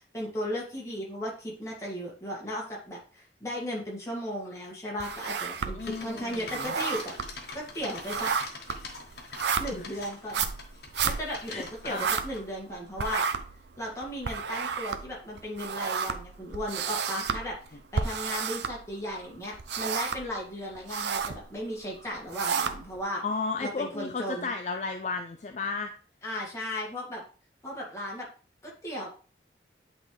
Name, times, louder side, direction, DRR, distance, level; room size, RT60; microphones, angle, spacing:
voice 1, 0.0-8.3 9.6-10.5 11.0-13.2 13.8-17.6 17.9-23.2 23.6-24.5 26.2-27.2 27.6-28.3 28.6-29.1, equal, 15° left, -3 dB, 1.8 m, -36 dB
sound 1, 5.0-6.0 6.3-12.7 13.0-19.2 19.5-20.4 20.7-21.4 22.0-23.0, right 6 dB, 80° right, 0.5 m, -32 dB
voice 2, 5.7-6.7 9.7-9.9 11.5-12.1 23.2-25.9, left 4 dB, 40° left, 5 dB, 0.4 m, -34 dB
sound 2, 5.8-12.4, left 3 dB, 65° left, 1.3 m, -44 dB
8.6 x 3.8 x 3.2 m, 0.39 s
head